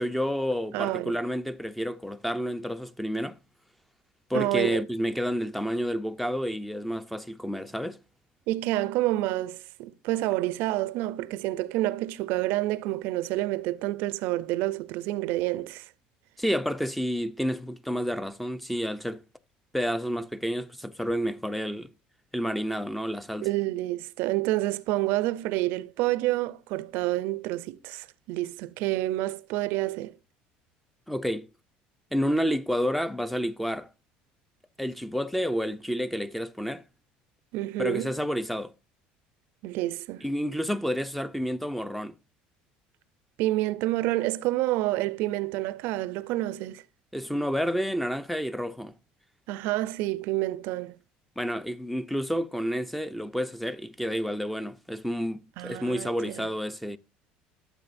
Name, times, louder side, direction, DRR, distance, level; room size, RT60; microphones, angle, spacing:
voice 1, 0.0-3.4 4.3-8.0 16.4-19.2 19.7-21.9 22.3-23.5 31.1-31.5 32.1-33.9 34.8-36.8 37.8-38.7 40.2-42.1 47.1-48.9 51.4-57.0, equal, ahead, 0.6 m, -30 dB
voice 2, 0.7-1.2 4.3-4.8 8.5-15.9 23.4-30.1 37.5-38.1 39.6-40.2 43.4-46.8 49.5-51.0 55.6-56.5, right 17 dB, 75° right, 0.5 m, -28 dB
13.5 x 7.4 x 2.6 m
supercardioid pair, 110°, 3 cm